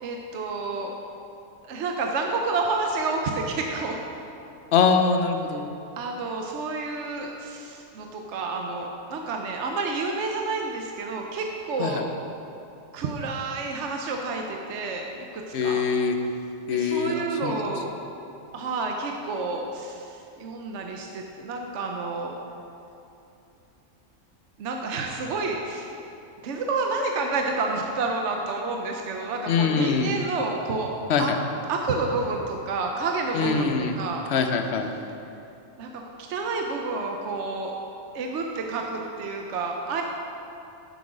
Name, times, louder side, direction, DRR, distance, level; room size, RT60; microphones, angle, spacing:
voice 1, 0.0-0.9 1.6-4.0 6.0-12.1 12.9-15.8 16.7-17.9 18.5-22.3 24.6-25.9 26.4-31.3 31.7-34.2 35.8-35.9 36.2-37.8 38.1-40.0, right 3 dB, 65° right, 2 dB, 0.9 m, -29 dB
voice 2, 4.7-5.7 11.8-12.0 15.5-16.2 16.7-17.6 29.5-30.1 31.1-31.4 33.3-34.0 34.3-34.9, left 5 dB, 60° left, 6 dB, 0.8 m, -23 dB
7.8 x 7.0 x 4.9 m, 2.8 s
omnidirectional pair, 1.4 m